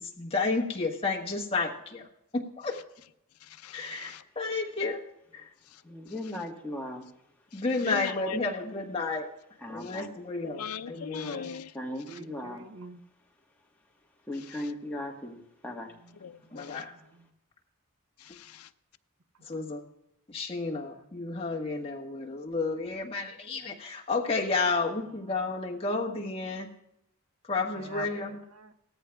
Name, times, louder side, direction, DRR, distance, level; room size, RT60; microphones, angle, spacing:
voice 1, 0.0-2.1 2.3-2.8 3.7-5.0 5.3-5.5 7.5-9.3 9.7-11.5 16.5-16.9 19.4-19.8 20.3-26.7 27.5-28.4, left 3 dB, 25° left, -1 dB, 1.3 m, -31 dB
voice 2, 3.4-4.2 5.6-5.8 7.5-8.4 9.8-10.1 10.4-11.8 12.1-12.2 14.4-14.7 16.1-16.8 18.2-18.7, left 7 dB, 90° left, 11 dB, 0.5 m, -40 dB
voice 3, 5.8-7.0 9.6-10.1 11.7-12.7 14.3-15.9, left 1 dB, 10° left, -1 dB, 1.3 m, -38 dB
voice 4, 10.9-11.6 12.1-13.0 16.0-16.1 16.4-17.3 19.7-19.9 20.7-21.1 25.0-25.5 27.7-28.7, right 3 dB, 85° right, 9 dB, 0.8 m, -48 dB
17.5 x 14.0 x 2.3 m, 0.80 s
head